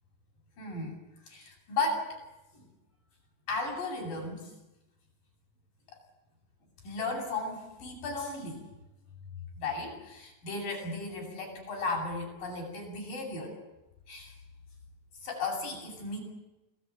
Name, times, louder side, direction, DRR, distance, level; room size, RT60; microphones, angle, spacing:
voice 1, 0.6-1.0 1.3-2.1 3.5-4.5 6.8-8.6 9.6-13.5 14.1-14.3 15.2-16.2, left 3 dB, 50° left, 1 dB, 9.7 m, -35 dB
27.0 x 19.5 x 9.4 m, 0.99 s
omnidirectional pair, 5.1 m